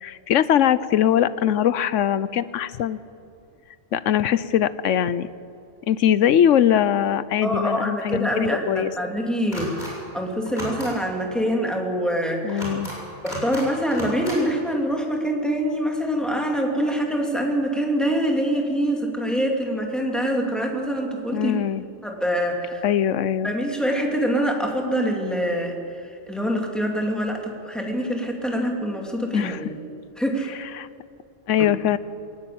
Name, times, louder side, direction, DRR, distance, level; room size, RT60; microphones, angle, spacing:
voice 1, 0.0-3.0 3.9-5.3 5.9-8.9 12.4-12.9 21.3-21.8 22.8-23.5 29.3-29.6 30.7-30.9 31.5-32.0, left 10 dB, 85° left, 16 dB, 1.1 m, -21 dB
voice 2, 7.4-12.6 13.2-21.6 22.0-22.8 23.4-25.8 26.0-29.8 30.2-30.6 31.6-31.7, equal, ahead, 0 dB, 2.9 m, -25 dB
sound 1, 9.5-9.9 10.5-10.9 12.5-13.0 13.3-13.6 13.9-14.4, equal, 35° left, 7.0 m, -33 dB
21.5 x 19.0 x 8.7 m, 2.5 s
omnidirectional pair, 1.2 m